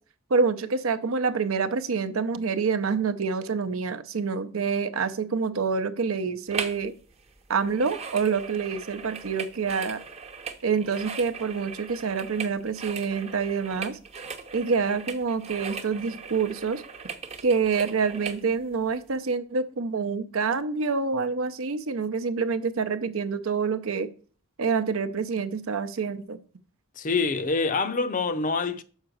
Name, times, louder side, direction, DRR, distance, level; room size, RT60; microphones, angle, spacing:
voice 1, 0.3-6.9 7.5-10.0 10.6-14.0 14.5-16.8 17.4-24.1 24.6-26.4, right 5 dB, 75° right, 0.6 m, -27 dB
sound 1, 6.5-6.9 7.1-18.4 18.9-19.0, right 5 dB, 30° right, 0.7 m, -39 dB
voice 2, 27.0-28.8, left 4 dB, 40° left, 0.5 m, -26 dB
6.4 x 4.8 x 6.3 m
head